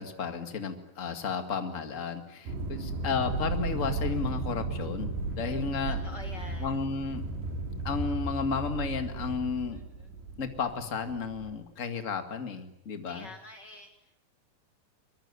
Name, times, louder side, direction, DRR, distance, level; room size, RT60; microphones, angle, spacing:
voice 1, 0.0-6.0 6.6-7.2 7.8-9.8 10.4-13.3, left 5 dB, 35° left, 7 dB, 1.2 m, -33 dB
sound 1, 2.5-11.5, right 3 dB, 80° right, 5.4 m, -35 dB
voice 2, 5.9-6.8 9.7-10.1 13.1-14.1, left 2 dB, 65° left, 6 dB, 1.0 m, -47 dB
24.5 x 21.5 x 9.6 m, 0.79 s
omnidirectional pair, 4.7 m